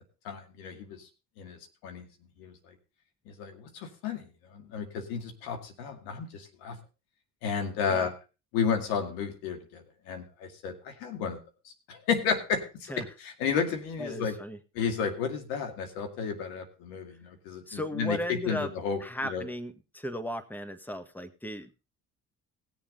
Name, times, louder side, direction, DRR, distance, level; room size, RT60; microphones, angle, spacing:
voice 1, 0.2-1.1 1.4-2.1 2.4-2.8 3.3-6.8 7.4-8.1 8.5-11.4 11.6-14.4 14.7-19.5, left 6 dB, 90° left, 5 dB, 2.3 m, -32 dB
voice 2, 14.0-14.6 17.7-18.7 19.0-21.7, equal, 5° left, 10 dB, 1.4 m, -36 dB
19.0 x 7.2 x 3.9 m, 0.32 s
supercardioid pair, 80°, 35 cm